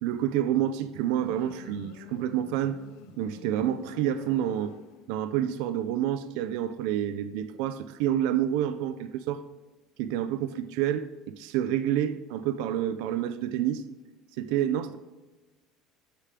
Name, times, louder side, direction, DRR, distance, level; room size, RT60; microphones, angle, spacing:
voice 1, 0.0-2.8 3.2-4.7 5.1-9.4 10.0-13.8 14.4-15.0, right 11 dB, 80° right, 0.5 m, -28 dB
Motorcycle, 1.0-5.4, left 10 dB, 80° left, 0.6 m, -48 dB
13.5 x 6.6 x 3.7 m
cardioid pair, 160°, 0 cm